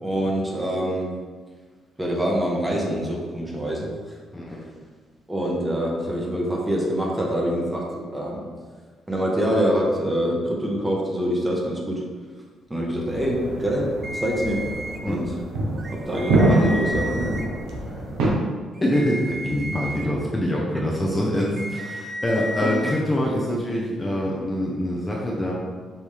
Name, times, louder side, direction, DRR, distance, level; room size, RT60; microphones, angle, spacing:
voice 1, 0.0-1.1 2.0-4.2 5.3-8.4 9.1-12.0 12.7-14.6 15.0-15.3 15.9-17.1 22.6-22.7, equal, 15° right, -2 dB, 1.0 m, -25 dB
voice 2, 4.3-4.7 15.0-15.2 17.9-18.1 18.8-25.5, left 1 dB, 15° left, -3 dB, 0.7 m, -25 dB
sound 1, 13.1-18.3, right 2 dB, 90° right, 0.8 m, -25 dB
sound 2, 14.0-15.0 15.8-17.4 18.7-20.0 21.4-23.0, equal, 30° right, 0.4 m, -33 dB
5.4 x 2.7 x 3.2 m, 1.5 s
cardioid pair, 90°, 0 cm